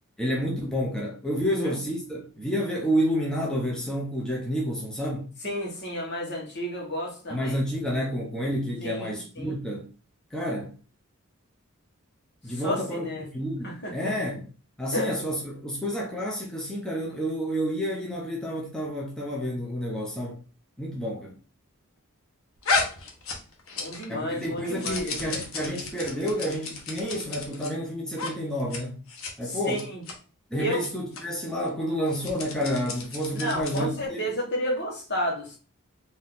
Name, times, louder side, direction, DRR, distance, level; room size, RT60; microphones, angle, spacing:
voice 1, 0.2-5.3 7.3-9.9 10.3-10.7 12.4-14.5 14.8-20.4 20.8-21.4 24.1-29.0 29.4-29.8 30.5-34.2, equal, 5° left, 0.7 m, -29 dB
voice 2, 1.5-1.8 5.4-7.6 8.8-9.5 12.5-13.2 13.6-14.1 14.9-15.1 23.8-25.2 29.4-30.0 30.6-30.8 33.3-35.6, equal, 50° left, 1.4 m, -32 dB
sound 1, 22.6-24.1 24.4-27.7 28.1-28.3 28.6-28.8 29.1-29.3 29.7-30.1 30.7-30.9 31.1-31.2 32.0-33.9, left 4 dB, 75° left, 1.0 m, -32 dB
3.9 x 2.7 x 3.8 m
head